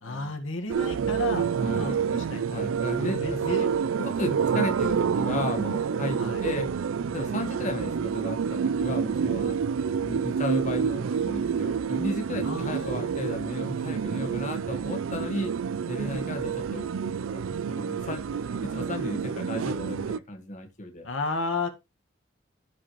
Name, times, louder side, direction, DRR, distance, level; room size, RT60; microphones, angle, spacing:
voice 1, 0.0-3.7 6.2-6.4 12.4-13.1 21.0-21.7, left 3 dB, 80° left, 1.7 m, -33 dB
sound 1, 0.7-20.2, right 6 dB, 85° right, 0.4 m, -28 dB
voice 2, 1.6-2.0 2.5-3.7 4.0-6.7 7.1-9.6 10.0-15.5 15.9-21.1, left 1 dB, 40° left, 1.7 m, -34 dB
14.5 x 5.0 x 3.1 m
head